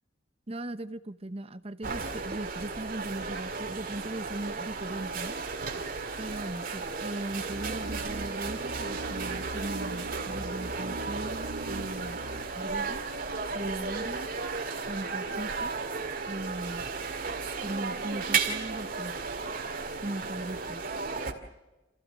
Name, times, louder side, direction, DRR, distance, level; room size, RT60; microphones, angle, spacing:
voice 1, 0.5-5.3 6.2-12.2 12.5-13.0 13.5-14.3 14.9-15.8 16.3-16.9 17.6-19.2 20.0-20.9, right 1 dB, 30° right, 12 dB, 0.8 m, -38 dB
sound 1, 1.8-21.3, right 4 dB, 50° right, 2.2 m, -34 dB
sound 2, 7.5-12.5, right 2 dB, 85° right, 2.1 m, -40 dB
28.0 x 15.0 x 7.5 m, 1.0 s
head